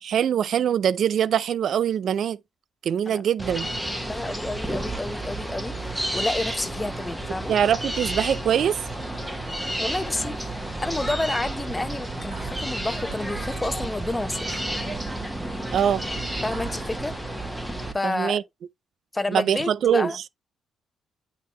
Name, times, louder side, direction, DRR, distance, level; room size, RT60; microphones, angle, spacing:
voice 1, 0.0-2.4 2.8-3.7 7.5-8.8 15.7-16.0 18.0-18.4 19.3-20.1, right 9 dB, 65° right, 0.3 m, -23 dB
sound 1, 3.4-17.9, right 1 dB, 5° right, 1.2 m, -31 dB
voice 2, 4.0-7.5 9.8-14.5 16.4-17.2 17.9-18.4 19.1-20.2, left 2 dB, 15° left, 0.7 m, -30 dB
sound 2, 9.9-17.2, right 5 dB, 35° right, 2.9 m, -41 dB
8.7 x 3.6 x 3.0 m
cardioid pair, 105°, 0 cm